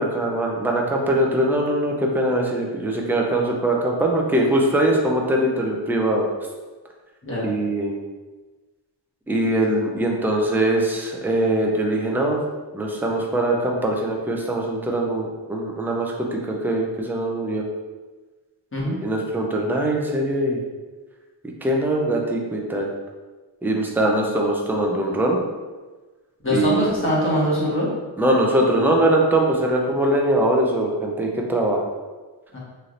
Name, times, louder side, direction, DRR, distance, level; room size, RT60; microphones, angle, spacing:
voice 1, 0.0-6.3 7.4-8.0 9.3-12.4 12.7-17.6 19.0-20.6 21.6-22.9 23.6-25.4 26.5-26.9 28.2-31.9, right 1 dB, 5° right, -1 dB, 0.5 m, -22 dB
voice 2, 26.4-27.9 32.5-32.6, equal, 25° left, -7 dB, 1.2 m, -22 dB
3.2 x 2.7 x 2.5 m, 1.3 s
cardioid pair, 65°, 46 cm